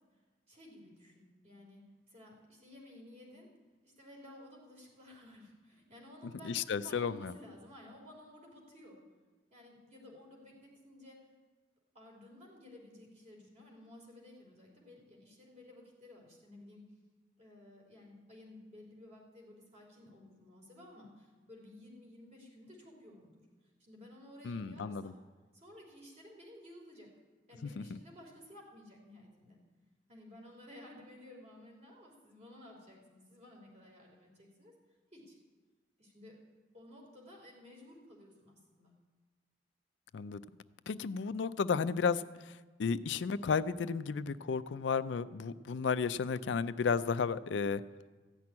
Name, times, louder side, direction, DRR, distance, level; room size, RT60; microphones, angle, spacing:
voice 1, 0.5-3.5 3.8-9.0 9.5-11.3 11.9-16.8 17.4-23.4 23.8-25.2 25.5-27.1 27.5-29.6 30.1-34.7 35.1-35.4 36.0-36.4 36.7-38.9, left 1 dB, 40° right, 0 dB, 3.2 m, -55 dB
voice 2, 6.4-7.3 24.4-25.1 27.8-27.9 40.1-40.4 40.9-42.2 42.8-47.8, left 5 dB, 75° left, 14 dB, 0.4 m, -33 dB
14.5 x 6.0 x 9.6 m, 1.3 s
head